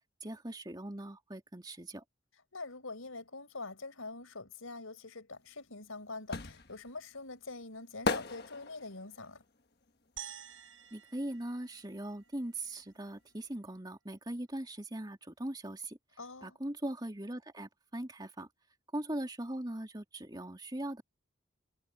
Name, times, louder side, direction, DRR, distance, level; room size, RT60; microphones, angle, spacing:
voice 1, 0.2-2.0 10.9-16.0 16.4-18.5 18.9-21.0, right 1 dB, 20° right, 2.9 m, -40 dB
voice 2, 2.5-9.4 16.2-16.6, left 3 dB, 90° left, 4.9 m, -44 dB
sound 1, 5.4-11.3 11.6-13.2 13.4-13.5, left 3 dB, 50° left, 1.4 m, -39 dB
sound 2, 10.2-12.6, right 10 dB, 75° right, 4.4 m, -49 dB
head